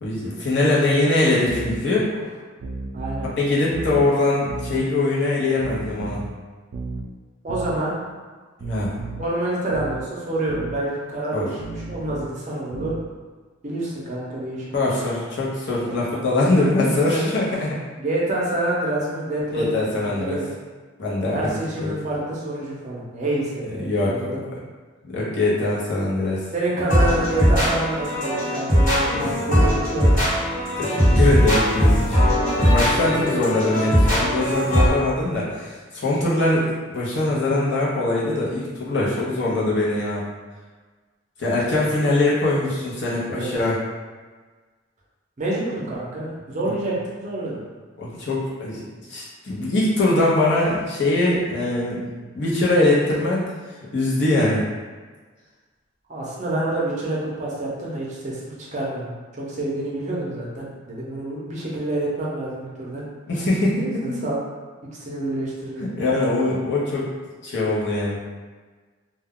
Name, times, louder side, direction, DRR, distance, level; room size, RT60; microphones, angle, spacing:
voice 1, 0.0-2.1 3.4-6.2 8.6-8.9 11.3-11.5 14.7-17.8 19.5-20.4 21.0-21.9 23.7-24.3 25.0-26.4 29.1-29.3 30.8-32.2 32.6-40.2 41.4-43.8 46.6-46.7 48.0-48.8 49.1-52.0 52.3-53.5 53.9-54.6 63.3-64.2 65.8-67.1 67.4-68.2, left 2 dB, 55° left, -6 dB, 0.7 m, -22 dB
sound 1, 1.5-1.8 2.6-3.3 3.7-4.1 4.5-4.8 5.6-6.3 6.7-7.0 7.5-7.8 8.6-9.3 9.7-10.1 10.5-10.8 11.6-12.3 12.7-13.1, right 3 dB, 80° right, 0.4 m, -33 dB
voice 2, 2.9-3.3 7.4-7.9 9.1-12.9 13.6-15.0 15.8-16.0 16.7-17.3 18.0-20.5 21.3-24.4 26.5-30.2 32.9-33.2 43.3-43.5 45.4-47.6 56.1-59.1 59.4-63.0 63.8-64.4 64.9-65.8, right 1 dB, 35° right, -5 dB, 0.6 m, -27 dB
sound 2, 26.9-34.9, equal, 40° left, 1.0 m, -19 dB
2.3 x 2.2 x 3.5 m, 1.4 s
head